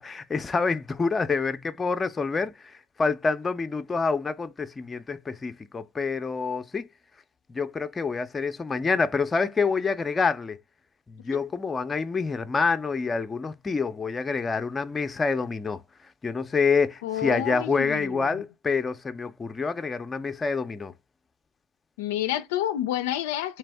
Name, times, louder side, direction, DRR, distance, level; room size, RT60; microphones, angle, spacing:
voice 1, 0.0-6.9 7.5-10.6 11.1-15.8 16.2-20.9, left 4 dB, 25° left, 0.5 m, -27 dB
voice 2, 17.0-18.3 22.0-23.6, left 12 dB, 80° left, 0.3 m, -29 dB
3.3 x 3.3 x 3.3 m
hypercardioid pair, 80°, 0 cm